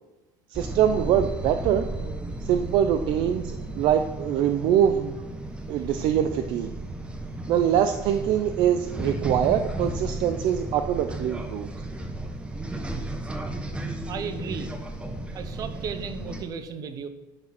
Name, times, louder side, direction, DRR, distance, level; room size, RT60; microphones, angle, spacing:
sound 1, 0.5-16.4, right 2 dB, 10° right, 1.0 m, -34 dB
voice 1, 0.5-1.9 2.4-5.2 5.7-6.7 7.5-11.7, right 9 dB, 60° right, 8 dB, 0.6 m, -23 dB
voice 2, 14.1-14.7 15.3-17.1, right 6 dB, 40° right, 10 dB, 1.1 m, -34 dB
11.5 x 6.3 x 6.0 m, 1.1 s
cardioid pair, 130°, 9 cm